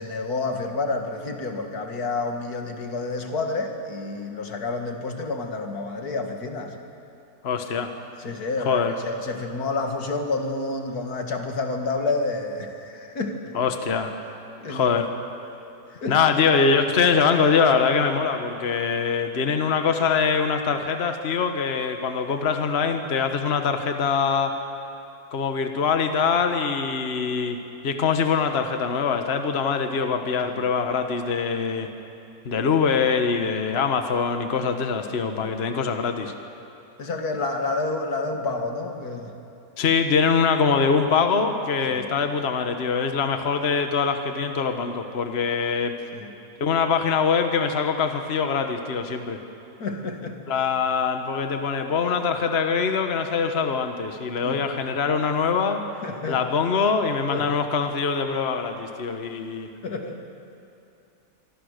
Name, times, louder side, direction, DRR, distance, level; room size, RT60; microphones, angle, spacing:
voice 1, 0.0-6.7 8.2-13.5 14.6-15.0 16.0-16.2 30.4-30.7 37.0-39.3 41.9-42.1 46.1-46.3 49.8-50.4 54.4-54.6 56.0-56.4 57.3-57.5 59.8-60.2, left 3 dB, 80° left, 4 dB, 2.4 m, -29 dB
voice 2, 7.4-7.9 8.6-9.0 13.5-14.1 14.7-15.2 16.1-24.5 25.3-31.9 32.4-36.3 39.8-45.9 46.6-49.4 50.5-55.8 56.3-59.7, left 5 dB, 45° left, 6 dB, 1.4 m, -23 dB
24.5 x 24.5 x 6.6 m, 2.7 s
omnidirectional pair, 1.6 m